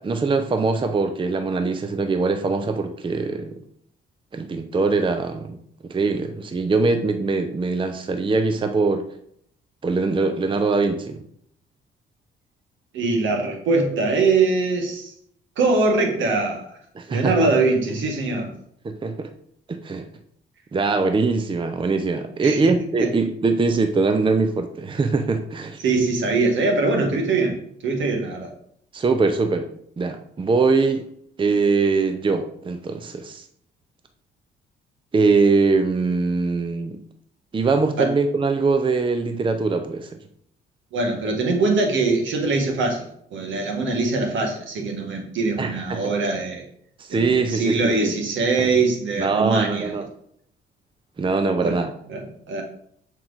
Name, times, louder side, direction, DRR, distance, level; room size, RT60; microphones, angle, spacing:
voice 1, 0.0-3.6 4.3-5.6 5.8-9.0 9.8-11.2 17.0-17.5 18.8-19.3 19.7-20.1 20.7-25.8 28.9-29.7 30.0-31.0 31.4-33.4 35.1-37.0 37.5-40.2 45.6-46.2 47.0-48.1 48.6-48.7 49.2-50.1 51.2-51.9, right 4 dB, 25° right, 7 dB, 0.6 m, -22 dB
voice 2, 12.9-15.1 15.6-16.8 17.1-18.5 22.4-22.7 23.0-23.1 25.8-27.6 27.8-28.5 38.0-38.1 40.9-46.7 47.1-49.9 51.6-51.8 52.1-52.6, right 3 dB, 70° right, 3 dB, 1.7 m, -22 dB
7.5 x 4.6 x 4.0 m, 0.68 s
cardioid pair, 90°, 20 cm